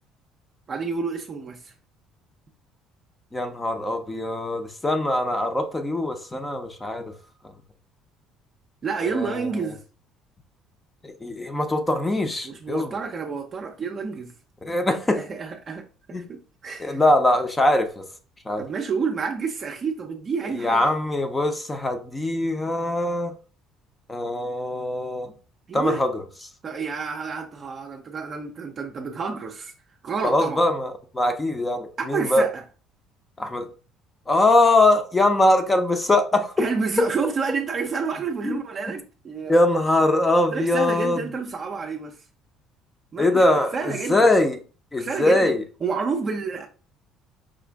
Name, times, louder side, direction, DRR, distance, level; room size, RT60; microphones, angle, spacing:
voice 1, 0.7-1.7 8.8-9.8 12.4-14.3 15.1-15.8 16.3-17.0 18.6-20.9 25.7-26.0 26.6-29.7 30.0-30.6 32.0-32.6 36.6-39.6 40.5-42.2 43.1-44.3 45.0-45.5 45.8-46.7, right 5 dB, 30° right, 0.5 m, -29 dB
voice 2, 3.3-7.1 9.0-9.5 11.0-12.9 14.6-15.2 16.1-16.2 16.8-18.1 18.5-18.6 20.6-23.3 24.1-25.3 25.7-26.2 30.2-32.4 33.4-33.7 34.3-36.6 38.4-38.6 38.9-39.0 39.5-41.2 43.2-44.6 44.9-45.6, left 1 dB, 15° left, 0.6 m, -22 dB
5.0 x 2.4 x 3.4 m
cardioid pair, 145°, 0 cm